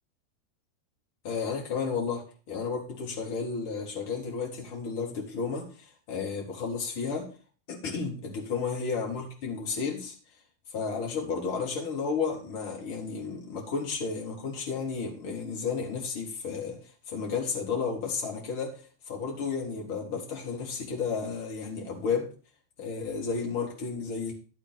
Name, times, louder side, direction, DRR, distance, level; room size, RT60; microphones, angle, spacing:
voice 1, 1.2-7.3 7.7-10.1 10.7-22.3 22.8-24.3, left 5 dB, 50° left, 0 dB, 3.7 m, -32 dB
12.0 x 8.2 x 4.3 m, 0.36 s
figure-of-eight pair, 90°, 0 cm